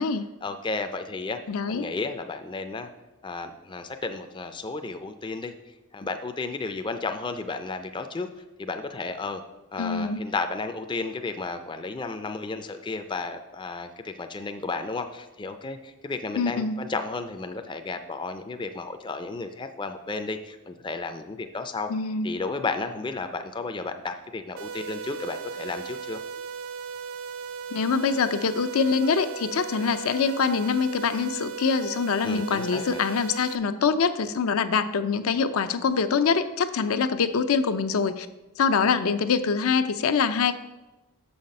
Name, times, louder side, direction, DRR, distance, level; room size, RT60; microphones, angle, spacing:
voice 1, 0.4-1.4 1.7-2.9 3.2-5.5 5.9-8.3 8.6-9.4 9.7-21.9 22.2-26.2 32.2-33.0, left 3 dB, 20° left, 8 dB, 0.4 m, -33 dB
voice 2, 1.5-1.9 9.8-10.2 16.4-16.8 21.9-22.3 27.7-38.3 38.6-40.5, left 5 dB, 80° left, 10 dB, 0.5 m, -24 dB
sound 1, 24.6-33.6, right 6 dB, 65° right, 0.4 m, -37 dB
6.8 x 5.7 x 5.3 m, 1.1 s
head